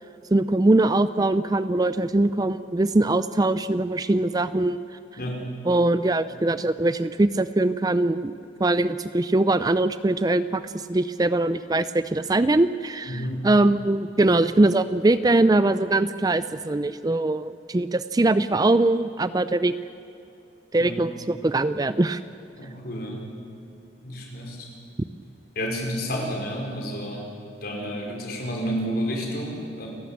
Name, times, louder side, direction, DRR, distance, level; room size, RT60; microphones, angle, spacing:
voice 1, 0.3-4.8 5.7-8.3 8.6-19.7 20.7-22.2, right 2 dB, 20° right, 14 dB, 0.4 m, -22 dB
voice 2, 5.2-5.5 13.1-13.5 20.8-21.0 22.5-23.3 24.0-24.7 25.5-27.3 27.6-29.9, equal, 55° left, 0 dB, 4.9 m, -30 dB
30.0 x 12.0 x 8.5 m, 2.9 s
head